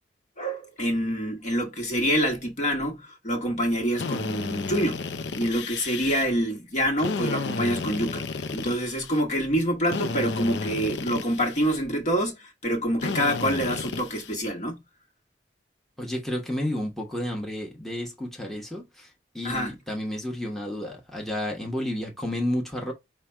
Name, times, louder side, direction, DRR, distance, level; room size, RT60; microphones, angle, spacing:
voice 1, 0.4-5.0 5.3-8.2 8.5-14.8 19.4-19.7, equal, 45° left, 1.2 m, -26 dB
Drill, 4.0-6.2 7.0-9.2 9.9-11.8 13.0-14.4, left 4 dB, 70° left, 0.5 m, -32 dB
voice 2, 16.0-19.1 19.3-22.9, left 1 dB, ahead, 0.9 m, -31 dB
4.8 x 2.2 x 4.4 m
head